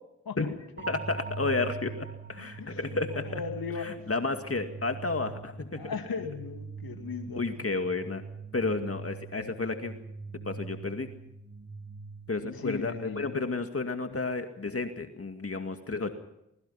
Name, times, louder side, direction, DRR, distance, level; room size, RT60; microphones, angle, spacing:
voice 1, 0.3-0.8 2.6-2.8 3.1-3.9 5.8-7.5 12.4-13.4 14.1-14.2, left 5 dB, 75° left, 5 dB, 2.3 m, -38 dB
sound 1, 0.8-12.7, right 5 dB, 30° right, 3.1 m, -42 dB
voice 2, 0.9-3.4 3.8-5.8 7.4-8.2 8.5-9.9 10.4-11.1 12.3-16.1, left 3 dB, 40° left, 6 dB, 2.1 m, -32 dB
24.0 x 22.0 x 5.8 m, 0.83 s
cardioid pair, 45°, 36 cm